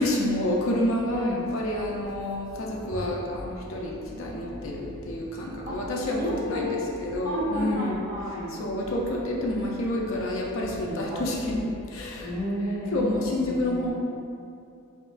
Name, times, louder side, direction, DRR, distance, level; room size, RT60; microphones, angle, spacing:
voice 1, 0.0-8.0 8.6-12.3 12.9-13.9, left 1 dB, 65° left, -2 dB, 0.5 m, -28 dB
voice 2, 1.1-1.5 5.7-5.8 6.2-6.9 7.2-8.6 10.8-11.3 12.2-13.9, equal, 40° right, -9 dB, 1.1 m, -32 dB
4.4 x 2.9 x 2.5 m, 2.5 s
head